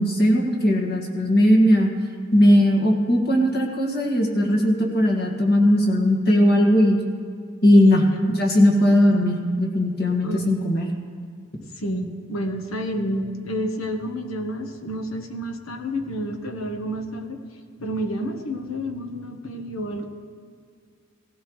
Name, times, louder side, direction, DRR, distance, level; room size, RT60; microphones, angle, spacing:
voice 1, 0.0-1.9 2.3-7.0 7.6-8.0 8.3-10.9, equal, 50° left, 0 dB, 1.9 m, -18 dB
voice 2, 7.7-8.2 10.2-10.4 11.7-17.4 17.8-20.1, equal, 85° left, 5 dB, 1.2 m, -29 dB
17.0 x 16.0 x 3.2 m, 2.1 s
head